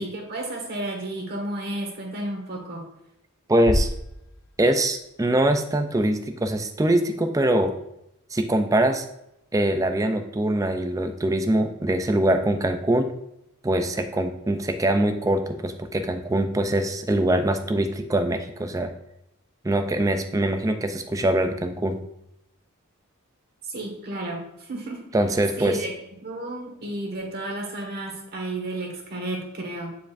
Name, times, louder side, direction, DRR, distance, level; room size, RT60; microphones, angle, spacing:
voice 1, 0.0-2.9 23.6-25.1 25.6-25.9 26.2-29.9, right 1 dB, 45° right, 0 dB, 1.6 m, -32 dB
voice 2, 3.5-3.9 4.6-7.7 8.3-9.1 9.5-13.1 13.6-18.9 19.6-22.0 25.1-25.8, right 1 dB, 15° right, 7 dB, 0.4 m, -23 dB
sound 1, 3.7-5.7, equal, 65° left, 0.7 m, -30 dB
9.2 x 4.8 x 2.6 m, 0.82 s
head